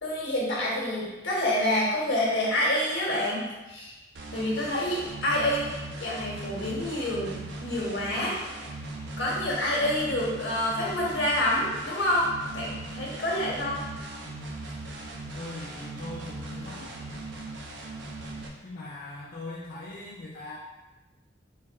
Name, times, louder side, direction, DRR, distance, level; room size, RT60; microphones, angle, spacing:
voice 1, 0.0-3.9 4.3-8.4 9.2-13.8, left 1 dB, 85° left, -5 dB, 1.4 m, -28 dB
sound 1, 4.1-18.5, right 2 dB, 75° right, 0.6 m, -39 dB
voice 2, 15.3-17.0 18.6-20.6, left 2 dB, 55° left, -7 dB, 0.6 m, -40 dB
4.5 x 2.3 x 4.5 m, 1.1 s
head